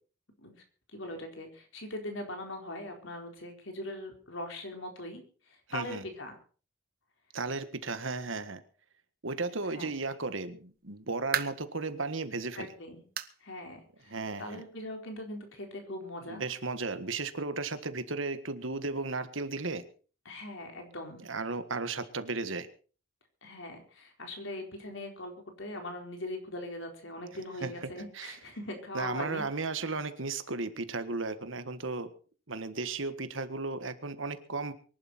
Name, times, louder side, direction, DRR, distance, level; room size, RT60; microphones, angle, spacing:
voice 1, 0.9-6.4 9.7-9.9 12.6-13.0 13.4-14.1 14.4-16.4 20.2-21.2 23.4-29.4, left 1 dB, 70° left, 3 dB, 4.2 m, -41 dB
voice 2, 5.7-6.0 7.3-8.6 9.2-12.7 14.1-14.6 16.3-19.8 21.2-22.7 27.6-28.3 28.9-32.1 32.5-34.7, right 3 dB, 70° right, 10 dB, 1.6 m, -35 dB
sound 1, 10.7-11.8 12.3-12.4 13.2-13.4 13.7-13.8 14.4-14.5 15.5-15.6, right 8 dB, 45° right, 1.0 m, -35 dB
24.0 x 11.0 x 4.3 m, 0.40 s
head